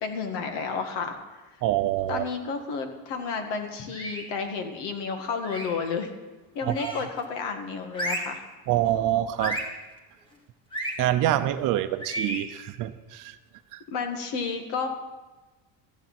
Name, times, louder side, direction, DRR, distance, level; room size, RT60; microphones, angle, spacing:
voice 1, 0.0-1.4 2.1-6.1 6.5-8.4 13.9-14.9, left 5 dB, 85° left, 5 dB, 2.0 m, -31 dB
voice 2, 1.6-2.2 6.6-6.9 8.7-9.6 11.0-13.4 13.7-13.8, right 13 dB, 50° right, 11 dB, 0.7 m, -26 dB
sound 1, 3.9-4.4 5.4-5.9 6.7-7.2 7.9-8.4 9.4-9.8 10.7-11.0 12.0-12.5, right 1 dB, 10° left, 1.5 m, -33 dB
14.5 x 9.9 x 5.9 m, 1.2 s
cardioid pair, 175°, 42 cm